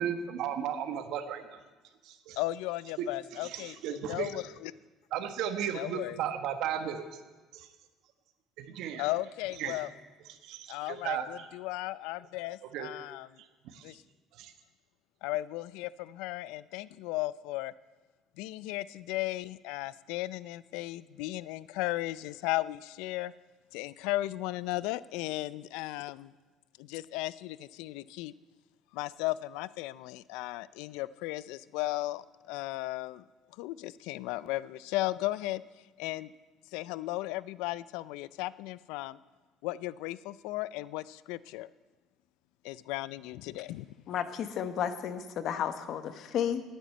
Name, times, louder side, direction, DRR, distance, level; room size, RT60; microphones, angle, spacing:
voice 1, 0.0-1.6 2.0-2.4 3.0-3.1 3.4-4.3 5.1-7.1 7.5-7.7 8.6-9.0 9.6-9.8 10.3-11.5 12.7-12.9 13.6-13.9 14.4-14.5, right 9 dB, 65° right, 9 dB, 1.2 m, -35 dB
voice 2, 2.4-4.7 5.7-6.2 9.0-9.9 10.7-13.3 13.8-14.0 15.2-17.7 18.4-23.3 23.7-26.3 26.8-28.3 28.9-33.2 33.6-35.6 36.0-36.3 36.7-39.2 39.6-41.7 42.6-43.9, left 17 dB, 90° left, 19 dB, 0.4 m, -35 dB
voice 3, 44.1-46.6, left 9 dB, 50° left, 10 dB, 1.0 m, -32 dB
10.0 x 10.0 x 9.1 m, 1.3 s
cardioid pair, 150°, 0 cm